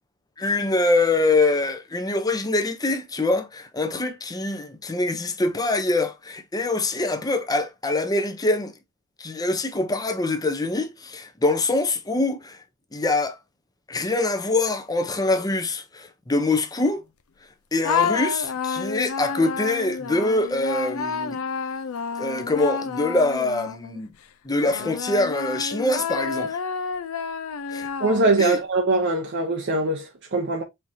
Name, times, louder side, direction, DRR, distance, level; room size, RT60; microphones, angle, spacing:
voice 1, 0.4-8.7 9.2-12.6 12.9-13.4 13.9-17.0 17.7-21.4 22.2-24.1 24.4-26.6 27.7-27.9 28.4-28.6, left 2 dB, 15° left, 0.7 m, -24 dB
sound 1, 17.8-24.1 24.7-28.6, left 6 dB, 75° left, 0.5 m, -29 dB
voice 2, 28.0-30.6, right 2 dB, 55° right, 0.7 m, -22 dB
4.5 x 3.6 x 2.7 m
head